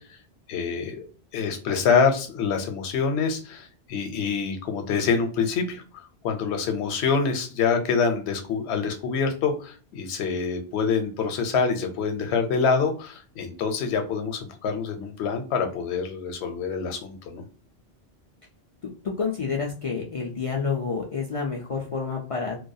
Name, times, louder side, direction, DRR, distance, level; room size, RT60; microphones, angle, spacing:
voice 1, 0.5-1.0 1.3-17.4, left 5 dB, 75° left, 6 dB, 0.9 m, -26 dB
voice 2, 19.2-22.6, left 5 dB, 55° left, -1 dB, 0.3 m, -29 dB
2.3 x 2.3 x 2.6 m, 0.38 s
omnidirectional pair, 1.2 m